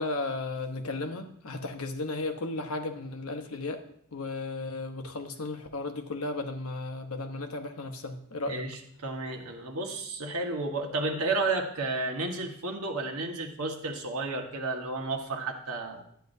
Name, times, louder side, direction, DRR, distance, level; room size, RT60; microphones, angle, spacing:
voice 1, 0.0-3.8 4.1-8.7, left 2 dB, 80° left, 6 dB, 0.9 m, -34 dB
voice 2, 8.5-16.0, right 3 dB, 85° right, 3 dB, 1.4 m, -32 dB
11.5 x 9.3 x 2.7 m, 0.66 s
head